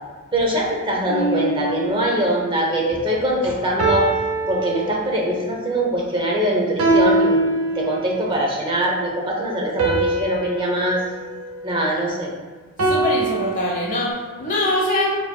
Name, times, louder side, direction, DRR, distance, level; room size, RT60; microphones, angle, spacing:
voice 1, 0.3-4.1 4.5-7.5 7.7-11.0 11.6-12.3, right 1 dB, 25° right, -2 dB, 0.9 m, -22 dB
sound 1, 1.1-2.4 3.8-5.4 6.8-8.3 9.8-12.2 12.8-14.1, right 2 dB, 80° right, 0.8 m, -23 dB
voice 2, 12.8-15.1, left 2 dB, 35° left, -4 dB, 1.0 m, -23 dB
7.1 x 3.2 x 2.3 m, 1.4 s
head